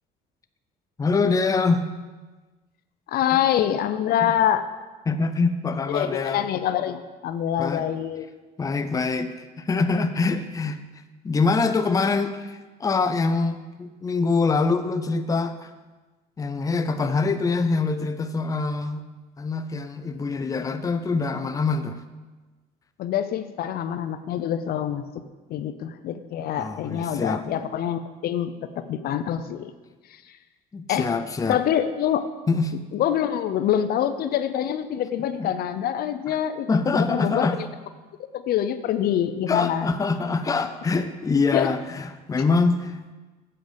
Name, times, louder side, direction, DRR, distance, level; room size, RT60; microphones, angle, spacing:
voice 1, 1.0-1.8 4.2-4.3 5.1-6.4 7.6-7.9 8.6-10.8 11.2-15.7 16.4-19.1 19.4-22.0 26.6-27.4 30.7-31.6 32.5-32.7 35.3-35.5 36.3-36.4 36.7-37.6 39.5-43.1, left 4 dB, 20° left, 9 dB, 0.5 m, -24 dB
voice 2, 3.1-4.6 5.9-8.3 23.0-25.0 25.5-28.5 28.9-29.7 30.9-31.1 31.5-32.2 32.9-36.7 36.9-37.5 38.3-39.9 41.5-41.7, left 10 dB, 65° left, 11 dB, 0.6 m, -25 dB
7.8 x 7.7 x 5.1 m, 1.3 s
cardioid pair, 110°, 17 cm